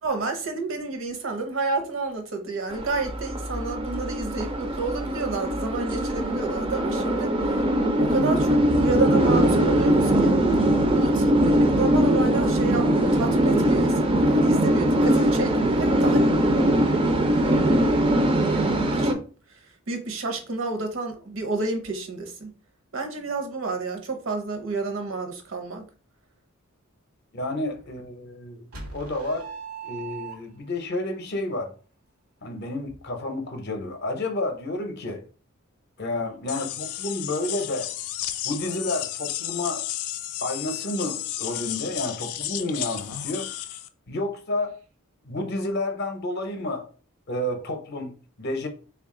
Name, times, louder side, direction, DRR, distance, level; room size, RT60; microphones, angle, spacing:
voice 1, 0.0-7.7 8.0-10.4 11.0-16.3 18.9-19.2 19.5-22.5 22.9-25.8, right 3 dB, 60° right, 0.7 m, -30 dB
sound 1, 2.7-19.1, right 1 dB, 25° right, 0.4 m, -21 dB
voice 2, 27.3-28.7 28.9-29.5 29.8-31.7 32.4-35.2 36.0-37.9 38.4-39.9 40.4-43.5 44.1-44.8 45.2-46.9 47.3-48.7, left 2 dB, 50° left, 0.6 m, -30 dB
sound 2, 28.7-30.8, right 6 dB, 90° right, 1.0 m, -39 dB
sound 3, 36.5-43.9, left 12 dB, 85° left, 0.4 m, -33 dB
3.5 x 2.3 x 3.6 m
head